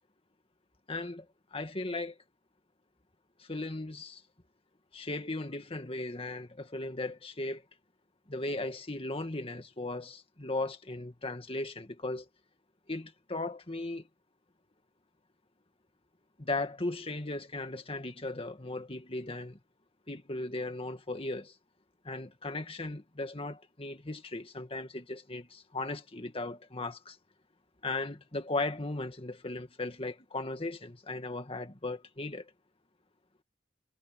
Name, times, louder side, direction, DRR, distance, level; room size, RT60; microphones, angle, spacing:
voice 1, 0.9-1.3 1.5-2.2 3.4-4.2 4.9-7.6 8.3-12.3 12.9-14.1 16.4-19.6 20.1-21.5 22.0-27.2 27.8-32.5, left 2 dB, 30° left, 2.0 m, -37 dB
head